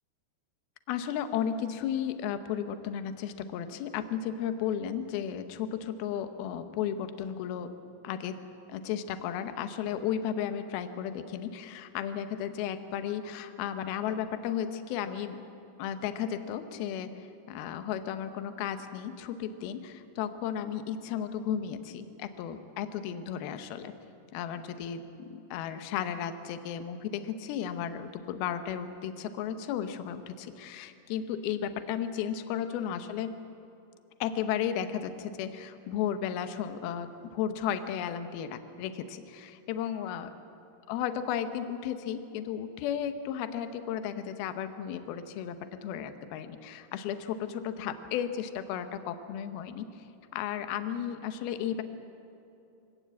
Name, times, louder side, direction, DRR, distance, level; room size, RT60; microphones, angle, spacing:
voice 1, 0.9-7.7 8.0-8.4 8.7-15.4 15.8-23.9 24.3-33.3 34.2-40.3 40.9-50.0 50.3-51.8, left 9 dB, 75° left, 9 dB, 2.8 m, -34 dB
24.5 x 17.0 x 8.4 m, 2.8 s
omnidirectional pair, 4.7 m